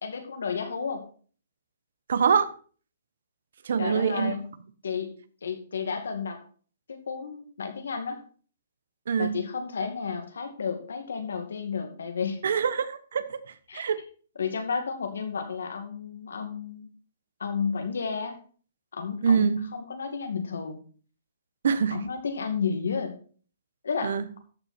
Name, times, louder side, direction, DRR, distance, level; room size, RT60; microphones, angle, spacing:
voice 1, 0.0-1.1 3.8-4.5 4.8-5.1 5.4-6.4 6.9-8.2 9.2-12.4 13.7-13.9 14.4-16.9 17.4-18.4 18.9-20.8 21.9-23.2 23.8-24.2, left 5 dB, 85° left, 6 dB, 2.3 m, -32 dB
voice 2, 2.1-2.5 3.6-4.3 9.1-9.3 12.4-13.4 13.7-14.0 19.2-19.6 21.6-22.0 24.0-24.2, right 6 dB, 70° right, 14 dB, 1.1 m, -24 dB
13.5 x 6.1 x 4.4 m, 0.42 s
hypercardioid pair, 160°, 0 cm